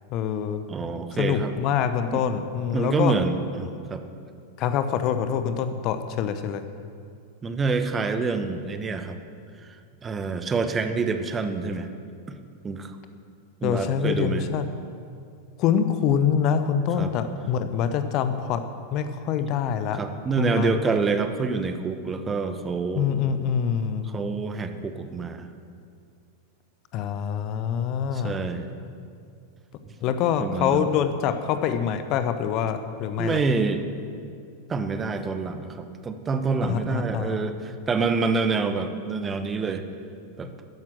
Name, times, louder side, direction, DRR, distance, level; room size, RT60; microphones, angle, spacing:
voice 1, 0.1-0.6 1.1-3.1 4.6-6.6 13.6-14.7 15.6-18.6 18.9-20.0 20.4-20.7 23.0-24.1 26.9-28.4 30.0-33.4 36.6-37.4, left 8 dB, 40° left, 10 dB, 0.9 m, -25 dB
voice 2, 0.7-1.5 2.1-2.2 2.7-4.0 7.4-9.2 10.0-11.9 12.6-13.0 13.6-14.5 17.0-17.1 19.9-23.1 24.0-25.5 28.1-28.7 30.4-30.9 33.2-33.8 34.7-39.8 40.4-40.5, right 4 dB, 20° right, 8 dB, 1.0 m, -27 dB
13.5 x 10.5 x 7.8 m, 2.3 s
figure-of-eight pair, 90°, 0 cm